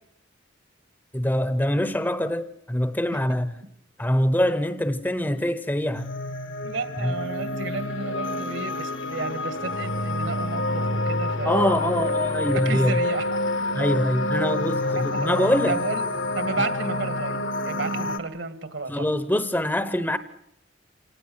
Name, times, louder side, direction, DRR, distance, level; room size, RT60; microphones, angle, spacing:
voice 1, 1.1-3.5 4.0-6.1 7.0-7.1 11.4-13.0 13.7-15.8 18.9-20.2, left 1 dB, 10° left, 0.8 m, -24 dB
sound 1, 5.9-18.2, left 2 dB, 75° left, 1.6 m, -28 dB
voice 2, 6.6-11.7 12.5-13.3 14.9-15.3 15.7-16.0 16.3-19.1, right 3 dB, 70° right, 2.1 m, -32 dB
27.0 x 18.5 x 8.1 m
head